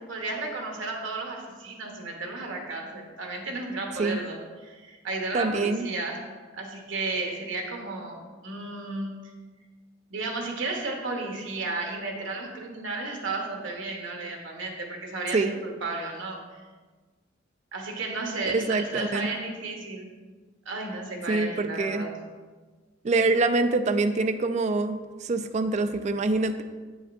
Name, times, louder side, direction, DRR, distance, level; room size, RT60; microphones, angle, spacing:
voice 1, 0.1-6.2 6.5-9.2 10.1-16.4 17.7-20.1 20.6-22.1, right 3 dB, 85° right, 1 dB, 1.1 m, -33 dB
voice 2, 5.3-5.9 15.3-15.5 18.5-19.3 21.3-22.1 23.0-26.6, right 3 dB, 40° right, 9 dB, 0.3 m, -25 dB
8.0 x 5.0 x 2.6 m, 1.4 s
head